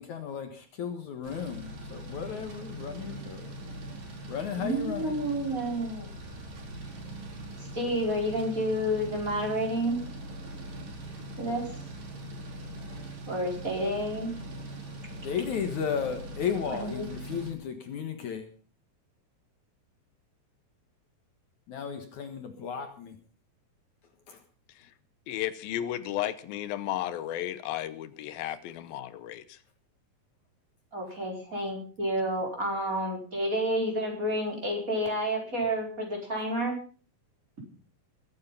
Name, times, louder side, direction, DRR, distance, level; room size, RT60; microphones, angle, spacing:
voice 1, 0.0-3.5 4.3-5.1 15.1-18.5 21.7-23.2 24.3-24.4, left 7 dB, 60° left, 7 dB, 2.7 m, -34 dB
sound 1, 1.2-17.5, right 1 dB, 70° right, 5.9 m, -41 dB
voice 2, 4.5-6.1 7.7-10.0 11.4-11.7 13.3-14.4 16.7-17.1 30.9-36.8, equal, 20° right, 0 dB, 5.0 m, -30 dB
voice 3, 25.3-29.6, left 12 dB, 85° left, 14 dB, 2.7 m, -34 dB
21.5 x 9.7 x 5.6 m, 0.40 s
omnidirectional pair, 4.1 m